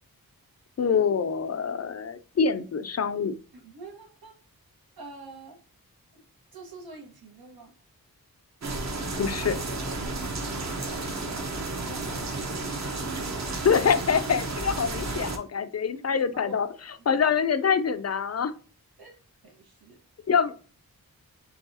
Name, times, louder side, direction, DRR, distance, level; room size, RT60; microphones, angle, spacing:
voice 1, 0.8-3.3 9.2-9.6 13.6-16.7 17.1-18.5 20.3-20.5, left 6 dB, 45° left, 11 dB, 0.4 m, -25 dB
voice 2, 3.5-4.4 5.0-5.6 6.1-6.2 6.5-7.7 10.0-11.5 11.8-12.7 15.9-16.6 17.1-17.2 19.0-20.0, right 3 dB, 85° right, 1 dB, 1.4 m, -47 dB
sound 1, 8.6-15.4, right 2 dB, 50° right, 0.9 m, -32 dB
4.7 x 3.5 x 2.7 m, 0.38 s
wide cardioid pair, 105°, 36 cm